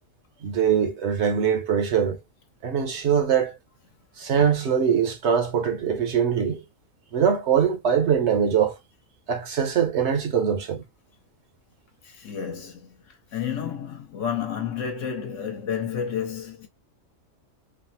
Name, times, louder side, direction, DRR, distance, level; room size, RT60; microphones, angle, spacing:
voice 1, 0.4-2.2 2.6-3.6 4.2-6.6 7.1-8.7 9.3-10.8, right 7 dB, 60° right, 0.9 m, -22 dB
voice 2, 12.1-12.9 13.3-16.7, left 8 dB, 70° left, 1.1 m, -30 dB
3.3 x 2.0 x 2.7 m
omnidirectional pair, 1.4 m